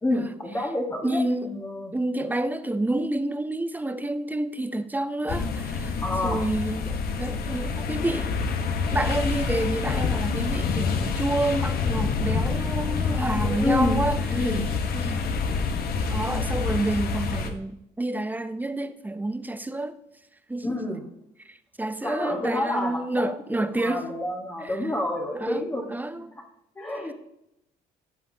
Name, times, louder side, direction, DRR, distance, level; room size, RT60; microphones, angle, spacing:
voice 1, 0.0-1.2 1.5-1.9 6.0-6.5 13.4-14.6 20.6-21.1 22.0-23.2 23.5-25.9 26.8-27.1, left 1 dB, 15° left, 1.1 m, -28 dB
voice 2, 1.0-1.5 1.9-6.0 6.2-8.3 8.9-14.5 14.9-15.2 16.1-20.0 20.5-21.0 21.4-24.1 24.6-24.8 25.3-26.3, right 2 dB, 10° right, 0.5 m, -29 dB
sound 1, 5.3-17.5, left 5 dB, 65° left, 0.9 m, -27 dB
14.5 x 5.8 x 2.7 m
cardioid pair, 110°, 17 cm